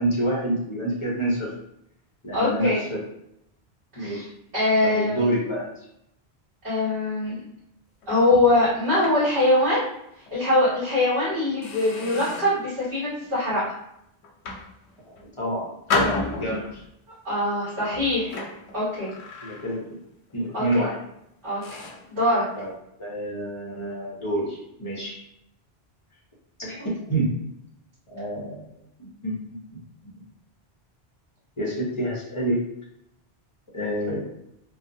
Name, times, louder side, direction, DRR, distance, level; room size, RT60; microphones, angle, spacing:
voice 1, 0.0-1.5 2.2-3.0 3.9-4.3 4.8-5.7 15.2-16.8 19.4-20.0 20.3-21.0 22.5-22.7 23.0-25.2 26.8-27.3 28.1-28.7 29.0-29.4 30.2-30.3 31.6-32.6 33.7-34.2, right 1 dB, 35° left, -5 dB, 0.6 m, -27 dB
voice 2, 2.3-2.8 4.0-4.2 4.5-5.3 6.6-7.4 8.1-9.9 10.3-13.6 17.2-18.3 18.7-19.1 20.5-20.9 21.4-21.6 22.1-22.5, left 2 dB, 60° right, -12 dB, 1.4 m, -22 dB
sound 1, 8.0-9.8 10.3-10.4 11.0-11.1 11.6-12.7 13.2-13.6 14.2-15.3 15.9-16.9 17.7-20.0 20.3-20.6 21.1-21.2 21.6-22.1, left 3 dB, 90° left, 0.8 m, -33 dB
2.6 x 2.0 x 2.5 m, 0.80 s
omnidirectional pair, 1.1 m